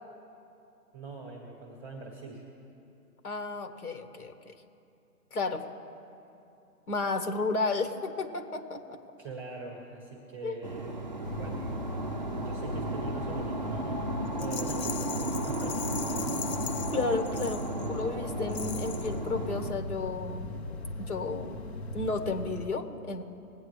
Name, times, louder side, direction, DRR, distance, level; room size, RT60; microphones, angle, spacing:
voice 1, 0.9-2.4 9.2-11.1 11.3-11.6 12.4-16.4, right 3 dB, 5° right, -1 dB, 1.0 m, -43 dB
voice 2, 3.2-4.5 5.3-5.6 6.9-9.0 10.4-10.6 16.9-20.5 21.0-21.6 21.9-23.2, left 3 dB, 65° left, 6 dB, 1.6 m, -32 dB
sound 1, 10.6-19.7, right 1 dB, 30° right, 0.5 m, -34 dB
sound 2, 11.2-22.7, left 2 dB, 45° left, 0.8 m, -39 dB
Rattle, 14.4-18.0 18.5-19.2, left 7 dB, 85° left, 0.9 m, -40 dB
20.5 x 8.7 x 3.2 m, 2.7 s
hypercardioid pair, 155°, 47 cm